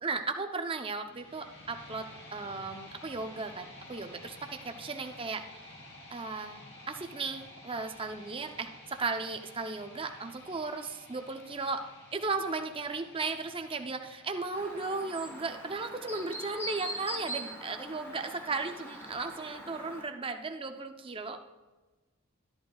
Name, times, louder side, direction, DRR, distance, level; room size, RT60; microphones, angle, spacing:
voice 1, 0.0-5.8 6.1-6.6 6.9-11.8 12.1-21.6, right 3 dB, 25° right, 6 dB, 0.6 m, -36 dB
sound 1, 1.0-19.0, left 2 dB, 50° left, 2.5 m, -52 dB
Chirp tweet, 14.5-20.0, equal, 10° left, 1.3 m, -42 dB
13.0 x 11.0 x 2.3 m, 1.2 s
head